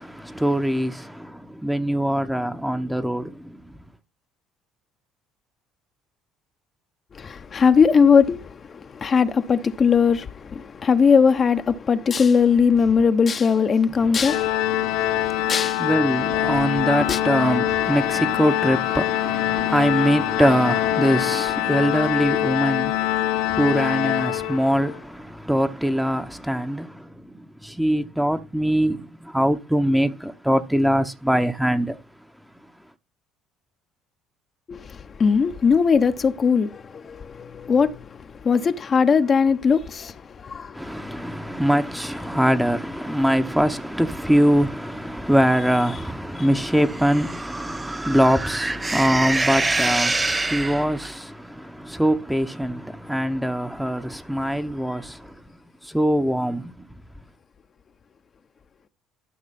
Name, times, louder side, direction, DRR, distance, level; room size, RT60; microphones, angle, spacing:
voice 1, 0.4-0.9 1.6-3.2 15.8-22.9 23.6-24.9 25.5-26.9 27.8-29.0 29.3-31.9 40.9-50.1 50.5-51.0 52.0-52.8 53.1-54.0 54.3-55.0 55.9-56.6, equal, 5° right, 1.0 m, -22 dB
voice 2, 7.1-15.9 16.5-16.6 17.0-17.2 34.7-41.5 46.3-46.5, left 6 dB, 40° left, 0.9 m, -20 dB
Organ, 14.2-25.0, left 14 dB, 75° left, 0.5 m, -24 dB
sound 1, 46.8-51.1, right 2 dB, 20° right, 0.7 m, -26 dB
12.5 x 5.9 x 4.2 m
hypercardioid pair, 65°, 0 cm